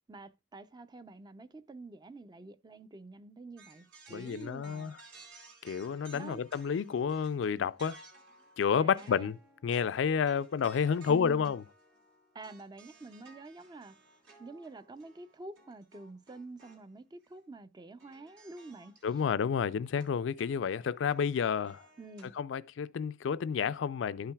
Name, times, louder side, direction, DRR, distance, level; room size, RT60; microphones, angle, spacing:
voice 1, 0.1-4.9 6.1-6.4 8.8-9.3 11.1-11.5 12.3-14.0 14.4-18.9 22.0-22.4, right 3 dB, 20° right, 0.4 m, -47 dB
sound 1, 3.6-16.9 17.2-17.4 18.0-22.4, right 3 dB, 75° right, 2.9 m, -58 dB
voice 2, 4.1-4.9 5.6-8.0 8.6-11.6 19.0-21.8 22.4-24.3, left 6 dB, 70° left, 0.4 m, -30 dB
12.5 x 5.7 x 2.2 m
head